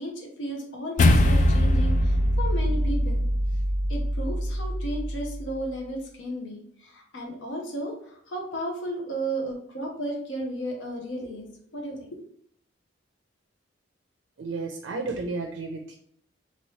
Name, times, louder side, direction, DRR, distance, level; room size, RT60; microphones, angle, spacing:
voice 1, 0.0-3.2 3.9-12.2, right 1 dB, 75° left, 0 dB, 0.7 m, -34 dB
sound 1, 1.0-5.5, left 1 dB, 40° left, 0.3 m, -23 dB
voice 2, 14.4-15.9, right 3 dB, 85° right, 3 dB, 0.4 m, -32 dB
2.9 x 2.7 x 3.0 m, 0.65 s
head